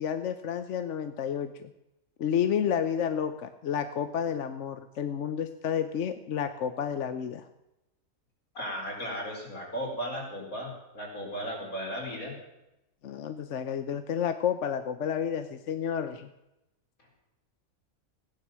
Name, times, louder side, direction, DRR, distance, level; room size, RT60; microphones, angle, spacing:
voice 1, 0.0-1.7 2.2-7.5 13.0-16.3, left 8 dB, 60° left, 10 dB, 1.0 m, -30 dB
voice 2, 8.5-12.4, equal, 75° left, -1 dB, 4.8 m, -36 dB
15.5 x 10.0 x 7.4 m, 0.91 s
omnidirectional pair, 1.5 m